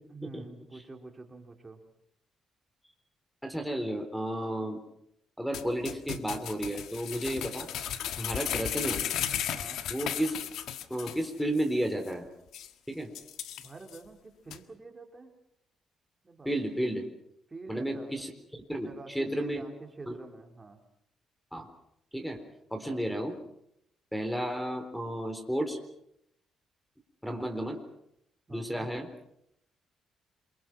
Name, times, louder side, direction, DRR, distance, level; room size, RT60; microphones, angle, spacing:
voice 1, 0.1-1.8 8.4-8.7 9.5-9.8 13.6-15.3 16.2-16.5 17.5-18.1 18.7-20.8 22.8-23.0 28.5-28.9, right 3 dB, 25° right, 3 dB, 3.9 m, -47 dB
voice 2, 3.4-4.8 5.4-7.7 8.2-9.0 9.9-10.4 10.9-12.3 12.9-13.1 16.4-17.1 17.7-18.3 18.7-19.6 20.1-20.2 21.5-21.7 22.1-22.4 22.7-23.4 24.1-25.8 27.2-27.8 28.5-29.1, right 1 dB, ahead, 7 dB, 4.0 m, -32 dB
sound 1, 5.5-11.3 11.6-11.7 12.1-12.2 12.5-12.7 13.1-14.0 14.5-14.6, left 10 dB, 80° left, 1.6 m, -35 dB
28.0 x 23.5 x 6.2 m, 0.77 s
cardioid pair, 90°, 0 cm